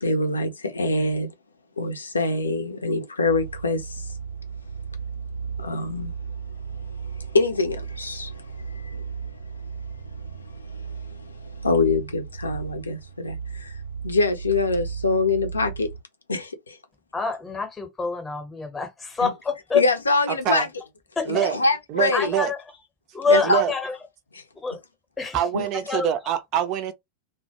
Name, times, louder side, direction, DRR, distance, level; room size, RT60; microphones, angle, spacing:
voice 1, 0.0-1.3 1.8-4.1 5.6-6.1 7.0-9.1 10.1-13.8 14.0-15.9 16.3-16.8 19.2-19.3 19.7-20.7 21.2-22.3 23.3-23.6 24.3-24.4 25.5-25.7, left 3 dB, 75° left, 0.6 m, -25 dB
sound 1, 3.2-16.0, right 6 dB, 90° right, 0.6 m, -35 dB
voice 2, 17.1-19.8 21.2-21.5 22.1-22.6 23.1-24.0 24.6-24.8 25.2-25.4 25.9-26.1, left 4 dB, 15° left, 0.8 m, -26 dB
voice 3, 21.3-21.6 21.9-22.5 23.4-23.7 25.3-26.9, right 10 dB, 40° right, 0.4 m, -25 dB
2.1 x 2.1 x 2.8 m
figure-of-eight pair, 90°, 0 cm